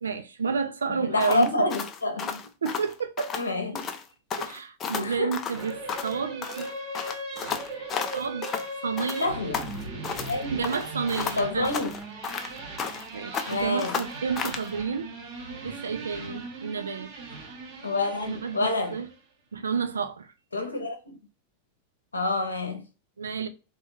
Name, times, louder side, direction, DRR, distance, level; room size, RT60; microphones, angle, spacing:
voice 1, 0.0-1.7 2.2-2.3 2.6-3.3 4.4-6.7 8.1-8.5 8.8-9.3 10.5-11.7 13.1-15.1 15.6-17.1 18.3-19.1 19.5-20.3 23.2-23.5, right 6 dB, 70° right, 0.4 m, -30 dB
voice 2, 0.9-2.4 3.4-3.9 5.0-5.3 9.2-9.6 10.2-10.6 11.4-11.9 13.5-14.0 17.8-19.0 20.5-21.2 22.1-22.8, left 2 dB, 75° left, 0.7 m, -28 dB
sound 1, 1.2-3.5 3.7-4.0 4.3-6.2 6.4-8.7 9.0-10.4 10.6-13.1 13.3-14.7, left 6 dB, 30° left, 0.4 m, -33 dB
sound 2, 5.5-19.1, right 2 dB, 45° right, 1.0 m, -39 dB
3.3 x 2.2 x 3.0 m
figure-of-eight pair, 90°, 0 cm